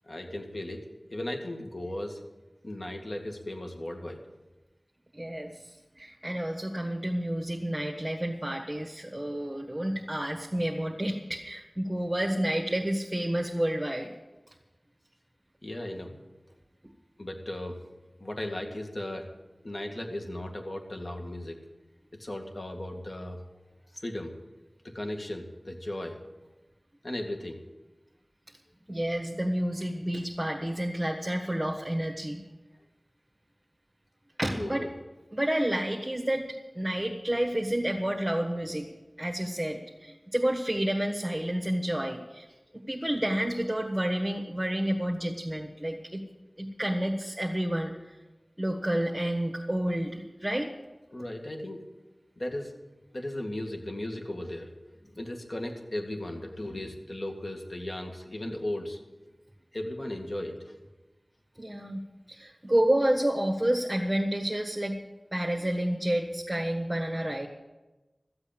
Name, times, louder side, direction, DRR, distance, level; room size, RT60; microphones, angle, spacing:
voice 1, 0.0-2.2 2.6-4.2 15.6-16.2 17.2-17.8 18.2-19.3 19.6-21.6 22.2-23.4 23.9-24.3 24.8-26.2 27.0-27.6 34.5-34.9 51.1-51.8 52.4-52.7 53.1-59.0 59.7-60.8, left 1 dB, 55° left, 3 dB, 2.0 m, -36 dB
voice 2, 5.1-14.1 28.9-32.4 34.4-34.9 35.3-38.9 39.2-42.4 42.9-46.2 46.6-47.9 48.6-50.8 61.6-65.0 65.3-67.5, right 1 dB, 15° right, -1 dB, 1.6 m, -30 dB
14.0 x 8.1 x 8.9 m, 1.1 s
wide cardioid pair, 45°, 0 cm